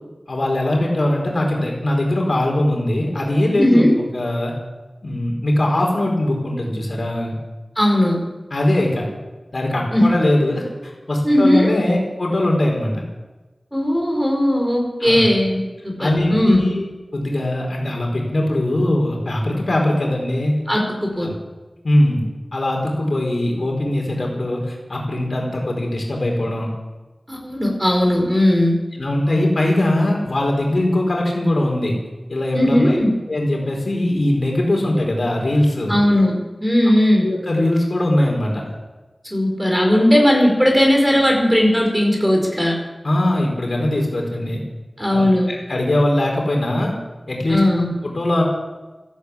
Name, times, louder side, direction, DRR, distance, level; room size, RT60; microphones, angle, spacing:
voice 1, 0.3-3.8 4.1-4.5 5.0-7.4 8.5-9.1 9.5-13.0 15.0-15.2 16.0-16.9 17.1-20.6 21.2-21.3 21.8-22.2 22.5-26.7 29.0-31.9 32.3-33.0 33.3-35.9 37.2-38.6 43.0-44.6 45.1-46.9 47.3-47.6 48.0-48.4, left 1 dB, 60° left, 0 dB, 4.3 m, -20 dB
voice 2, 3.6-3.9 7.8-8.2 9.9-10.1 11.2-11.7 13.7-16.7 20.7-21.3 27.3-28.8 32.5-33.1 35.9-36.3 36.6-37.3 39.2-42.7 45.0-45.5 47.5-47.9, left 1 dB, 5° right, 0 dB, 4.8 m, -17 dB
14.5 x 11.5 x 8.4 m, 1.2 s
wide cardioid pair, 70°, 0 cm